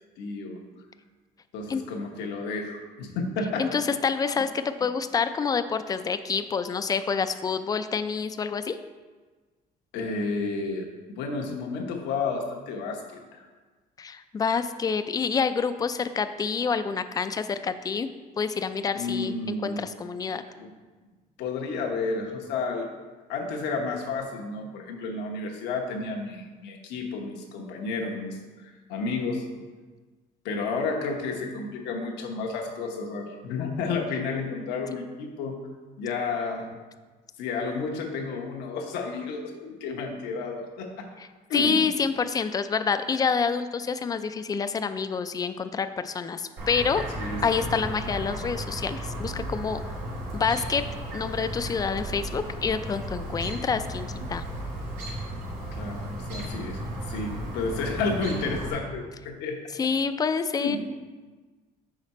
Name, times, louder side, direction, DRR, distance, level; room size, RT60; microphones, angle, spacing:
voice 1, 0.2-0.6 1.5-3.8 9.9-13.4 18.9-19.8 20.6-20.7 21.4-22.9 23.3-29.6 30.4-35.6 36.0-36.8 37.4-41.1 41.5-41.9 47.2-47.6 55.7-56.8 57.1-59.6 60.6-60.8, left 4 dB, 90° left, 1 dB, 1.0 m, -31 dB
voice 2, 3.6-8.8 14.0-18.1 18.4-20.4 41.5-47.0 47.4-49.8 50.3-50.8 51.1-54.4 59.8-60.8, left 5 dB, 20° left, 10 dB, 0.3 m, -27 dB
Chirp tweet, 46.6-58.7, right 1 dB, 80° right, 1.6 m, -34 dB
5.6 x 5.0 x 4.2 m, 1.3 s
cardioid pair, 110°, 17 cm